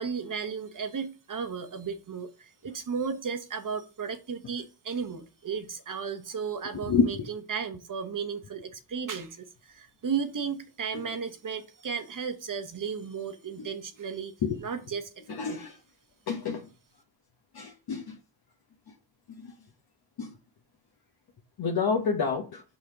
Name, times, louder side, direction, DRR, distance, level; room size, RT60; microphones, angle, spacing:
voice 1, 0.0-14.3 14.6-15.6, right 6 dB, 45° right, 1.0 m, -34 dB
voice 2, 6.9-7.3 10.9-11.0 13.6-13.7 14.4-14.6 15.3-15.7 16.3-16.6 17.5-18.2 20.2-20.3 21.6-22.6, left 5 dB, 55° left, 1.0 m, -28 dB
5.1 x 3.9 x 5.8 m
cardioid pair, 60°, 44 cm